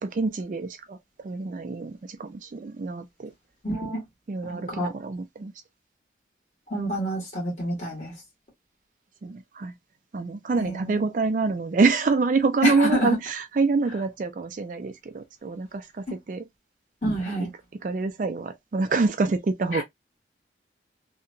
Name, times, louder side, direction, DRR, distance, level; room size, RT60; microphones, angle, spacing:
voice 1, 0.0-1.0 1.2-3.3 4.3-5.5 9.2-9.7 10.1-16.4 17.8-19.8, right 4 dB, 45° right, 0.3 m, -26 dB
voice 2, 3.6-4.1 4.4-4.9 6.7-8.1 10.5-11.0 12.6-13.2 16.1-16.2 17.0-17.5 19.7-19.8, equal, 40° left, 1.4 m, -28 dB
2.7 x 2.2 x 2.5 m
head